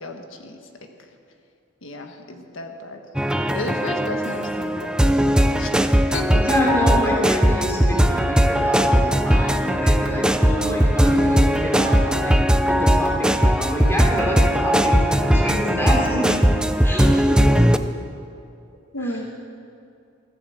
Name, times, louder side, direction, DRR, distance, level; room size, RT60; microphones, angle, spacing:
voice 1, 0.0-0.6 1.8-3.0 3.5-6.4 18.9-19.2, left 1 dB, 70° left, 4 dB, 1.5 m, -33 dB
sound 1, 3.2-17.8, equal, 5° right, 0.4 m, -19 dB
voice 2, 6.3-12.4 12.7-16.4 16.8-17.6, equal, 10° left, -3 dB, 3.0 m, -26 dB
14.5 x 10.5 x 7.9 m, 2.5 s
head